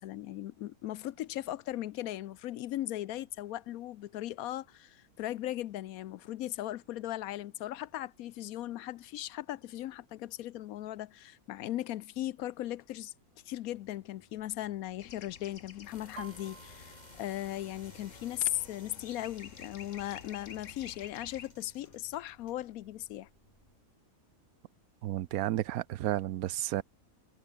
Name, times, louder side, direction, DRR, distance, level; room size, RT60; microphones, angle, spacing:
voice 1, 0.0-13.1 13.5-23.3, left 14 dB, 75° left, 1.0 m, -38 dB
sound 1, 13.7-23.8, left 1 dB, 25° left, 4.7 m, -58 dB
sound 2, 15.0-21.5, left 6 dB, 55° left, 1.7 m, -51 dB
Piano, 16.2-19.8 20.2-20.6 20.9-21.5 22.1-22.2 22.5-23.5 23.9-24.0, right 4 dB, 55° right, 2.5 m, -54 dB
voice 2, 25.0-26.8, right 14 dB, 75° right, 1.1 m, -32 dB
omnidirectional pair, 1.6 m